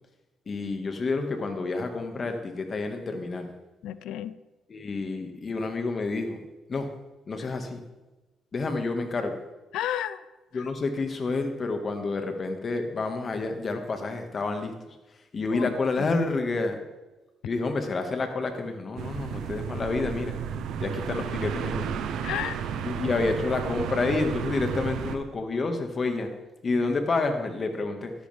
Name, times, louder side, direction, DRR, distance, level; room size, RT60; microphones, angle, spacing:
voice 1, 0.5-3.5 4.7-6.4 6.7-6.9 7.3-7.8 8.5-9.4 10.5-14.7 15.3-16.8 17.4-20.4 20.8-22.0 22.8-26.3 26.6-28.1, left 3 dB, 40° left, 5 dB, 1.7 m, -29 dB
voice 2, 3.8-4.4 7.4-7.5 9.7-10.2 10.5-10.6 15.5-16.1 22.2-22.6, left 11 dB, 85° left, 15 dB, 0.4 m, -32 dB
sound 1, 19.0-25.2, right 7 dB, 80° right, 0.8 m, -32 dB
13.0 x 11.5 x 3.5 m, 1.1 s
cardioid pair, 90°, 0 cm